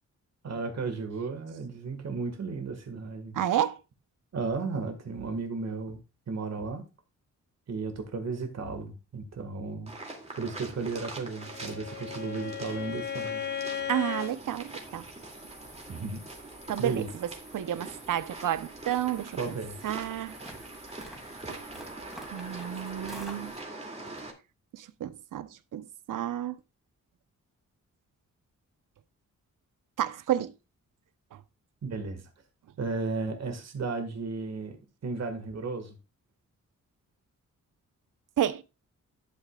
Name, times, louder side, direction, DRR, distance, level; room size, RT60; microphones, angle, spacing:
voice 1, 0.4-3.4 4.3-6.0 6.3-6.8 7.7-9.9 10.4-13.4 15.9-16.2 16.8-17.1 19.4-19.9 31.8-32.2 32.8-34.8 35.0-35.9, right 4 dB, 55° right, 1.7 m, -34 dB
voice 2, 3.3-3.8 13.9-15.0 16.7-17.0 17.5-19.6 19.8-20.4 21.5-21.6 22.3-23.5 24.7-26.6 30.0-30.5 38.4-38.6, right 11 dB, 85° right, 0.8 m, -31 dB
sound 1, 9.9-24.3, right 2 dB, 20° right, 2.4 m, -43 dB
Bowed string instrument, 11.2-14.4, left 8 dB, 35° left, 1.4 m, -36 dB
sound 2, 14.1-23.6, equal, ahead, 2.5 m, -50 dB
11.5 x 8.3 x 2.3 m
wide cardioid pair, 140°, 31 cm